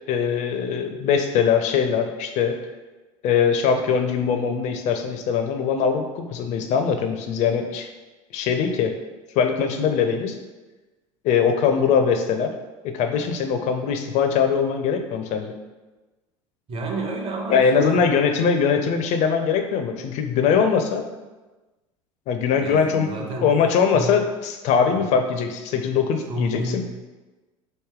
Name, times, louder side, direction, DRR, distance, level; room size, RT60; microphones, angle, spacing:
voice 1, 0.1-2.6 3.2-7.9 8.3-9.0 9.4-10.4 11.2-12.5 12.8-15.5 17.5-21.0 22.3-26.8, left 6 dB, 40° left, 6 dB, 0.4 m, -21 dB
voice 2, 16.7-18.1 22.6-23.6 23.9-24.2 24.9-25.2 26.3-26.9, right 2 dB, 35° right, 1 dB, 0.7 m, -30 dB
3.0 x 2.6 x 3.6 m, 1.2 s
figure-of-eight pair, 70°, 17 cm